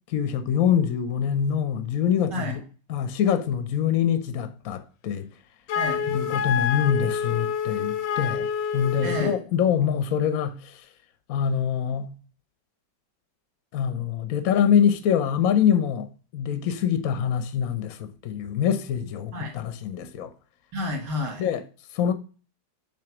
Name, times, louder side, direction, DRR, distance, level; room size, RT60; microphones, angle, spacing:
voice 1, 0.1-2.6 2.9-5.3 6.1-10.8 11.3-12.1 13.7-20.3 21.4-21.6 21.9-22.1, left 8 dB, 60° left, 1.0 m, -25 dB
Wind instrument woodwind instrument, 5.7-9.4, left 7 dB, 90° left, 1.3 m, -27 dB
voice 2, 5.8-6.1 9.0-9.4 19.3-19.6 20.7-21.4, left 1 dB, 75° right, 2.5 m, -30 dB
7.1 x 3.0 x 5.9 m
omnidirectional pair, 1.9 m